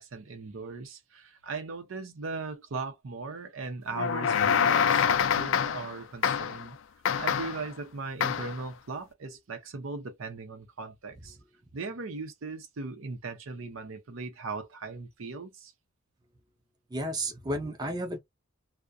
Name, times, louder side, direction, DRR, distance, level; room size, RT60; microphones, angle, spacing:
voice 1, 0.0-6.8 7.2-11.4 11.7-15.7, right 4 dB, 75° right, 0.6 m, -38 dB
sound 1, 3.9-5.9 6.2-6.6 7.0-7.7 8.2-8.6, left 7 dB, 65° left, 0.3 m, -26 dB
voice 2, 16.9-18.2, right 1 dB, 20° right, 0.5 m, -32 dB
2.3 x 2.1 x 2.5 m
head